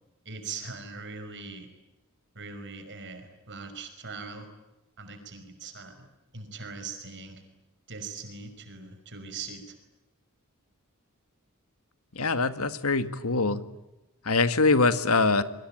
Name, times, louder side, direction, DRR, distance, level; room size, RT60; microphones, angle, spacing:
voice 1, 0.3-1.7 2.4-4.5 5.0-6.1 6.3-7.4 7.9-9.8, right 4 dB, 55° right, 8 dB, 5.5 m, -41 dB
voice 2, 12.2-13.6 14.3-15.4, left 3 dB, 75° left, 12 dB, 1.9 m, -23 dB
28.0 x 23.5 x 8.9 m, 0.97 s
head